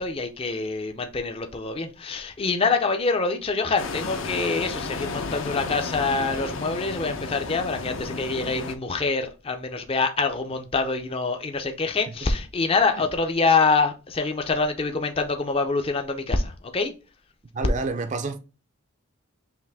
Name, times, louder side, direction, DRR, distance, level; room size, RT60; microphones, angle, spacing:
voice 1, 0.0-16.9, left 4 dB, 25° left, 0.4 m, -25 dB
sound 1, 3.8-8.8, left 3 dB, 65° left, 0.6 m, -33 dB
voice 2, 17.5-18.4, right 3 dB, 35° right, 0.4 m, -28 dB
5.7 x 2.5 x 3.4 m
head